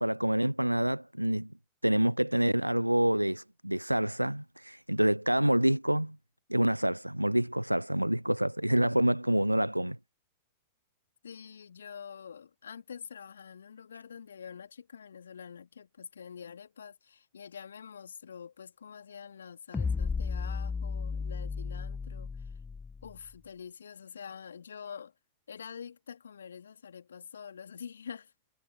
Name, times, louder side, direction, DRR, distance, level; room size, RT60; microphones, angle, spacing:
voice 1, 0.0-1.5 1.8-6.2 6.5-10.0, right 1 dB, 90° right, 0.4 m, -27 dB
voice 2, 11.2-22.5 23.0-25.1 25.5-28.3, left 7 dB, 70° left, 3.3 m, -46 dB
sound 1, 19.7-23.2, left 5 dB, 15° left, 2.0 m, -34 dB
figure-of-eight pair, 90°, 0 cm